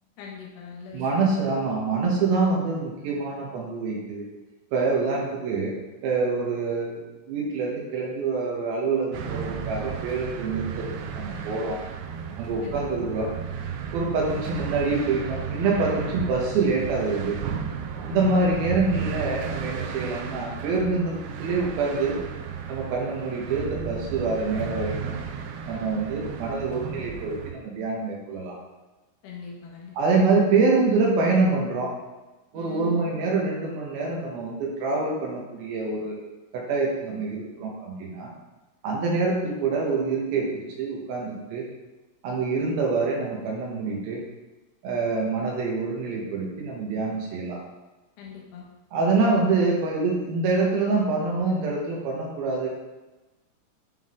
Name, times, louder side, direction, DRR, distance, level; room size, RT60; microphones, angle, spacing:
voice 1, 0.2-1.1 12.6-12.8 29.2-29.9 32.5-33.1 48.2-48.6, left 2 dB, 75° left, -2 dB, 3.2 m, -41 dB
voice 2, 0.9-4.3 4.7-5.7 6.0-11.8 12.4-13.3 13.9-17.4 18.1-22.2 22.7-25.2 25.7-28.6 30.0-32.0 32.5-36.2 36.5-38.3 38.8-41.7 42.2-44.2 44.8-47.6 48.9-52.7, right 3 dB, 70° right, -2 dB, 2.6 m, -26 dB
sound 1, 9.1-27.5, right 7 dB, 85° right, 2.9 m, -34 dB
9.1 x 3.8 x 3.7 m, 1.1 s
omnidirectional pair, 5.0 m